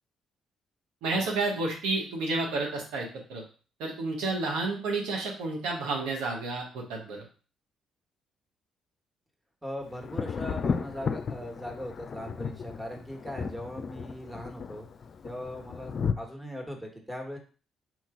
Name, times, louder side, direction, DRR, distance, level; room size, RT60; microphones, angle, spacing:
voice 1, 1.0-3.4 3.8-7.2, right 3 dB, 80° right, -1 dB, 1.3 m, -30 dB
voice 2, 9.6-14.9 15.2-17.4, equal, 10° right, 2 dB, 1.4 m, -39 dB
Thunder, 10.0-16.1, left 6 dB, 55° left, 0.4 m, -34 dB
4.5 x 2.9 x 3.8 m, 0.37 s
hypercardioid pair, 55°, 0 cm